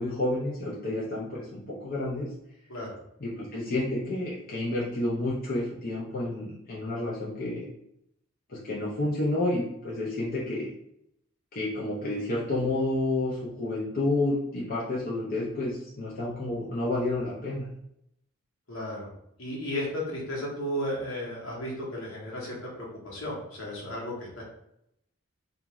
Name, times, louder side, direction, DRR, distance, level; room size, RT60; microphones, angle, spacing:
voice 1, 0.0-2.3 3.2-7.7 8.5-10.7 11.5-17.7, left 2 dB, 45° left, -6 dB, 0.6 m, -30 dB
voice 2, 18.7-19.1 19.4-24.4, equal, 80° left, -4 dB, 1.0 m, -34 dB
2.5 x 2.3 x 3.0 m, 0.77 s
head